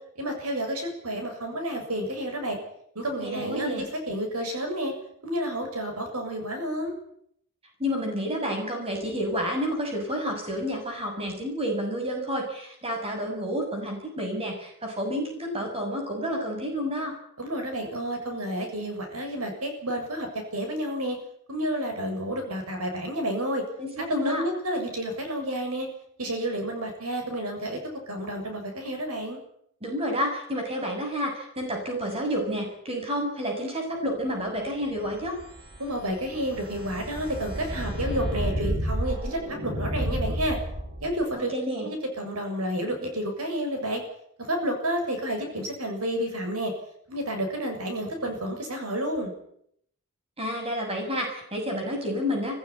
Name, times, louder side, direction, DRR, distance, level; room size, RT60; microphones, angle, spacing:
voice 1, 0.2-2.6 3.0-4.9 5.2-6.9 17.4-21.2 21.5-23.6 24.2-25.9 26.2-27.8 28.1-29.4 35.8-40.6 41.0-41.5 41.8-44.0 44.4-46.7 47.1-49.3, equal, 80° right, 4 dB, 7.1 m, -30 dB
voice 2, 3.2-3.9 7.8-17.1 23.8-24.4 29.8-35.4 41.4-41.9 50.4-52.6, equal, 25° right, 2 dB, 7.1 m, -30 dB
sound 1, 34.9-41.2, equal, 45° right, 6.2 m, -31 dB
23.5 x 16.0 x 10.0 m, 0.70 s
head